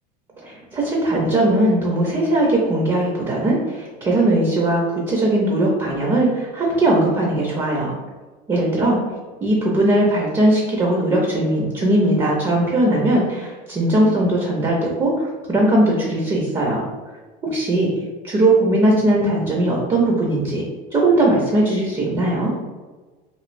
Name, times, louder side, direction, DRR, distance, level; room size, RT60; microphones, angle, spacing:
voice 1, 0.4-7.9 8.5-9.0 9.4-16.8 17.4-17.9 18.2-20.6 20.9-22.5, right 1 dB, 20° right, -2 dB, 0.6 m, -19 dB
3.1 x 2.6 x 2.5 m, 1.3 s
supercardioid pair, 115°, 21 cm